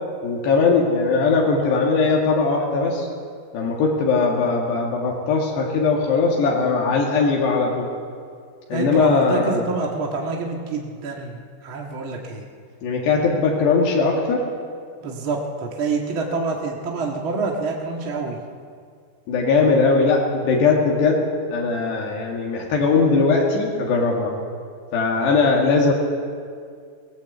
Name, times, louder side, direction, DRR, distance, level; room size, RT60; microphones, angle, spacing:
voice 1, 0.2-3.1 3.5-7.9 8.7-9.6 12.8-14.4 19.3-21.2 21.5-24.3 24.9-25.9, left 4 dB, 80° left, -2 dB, 4.3 m, -19 dB
voice 2, 8.7-12.4 15.0-18.4, right 3 dB, 50° right, 0 dB, 1.6 m, -27 dB
19.0 x 18.5 x 8.1 m, 2.1 s
omnidirectional pair, 4.8 m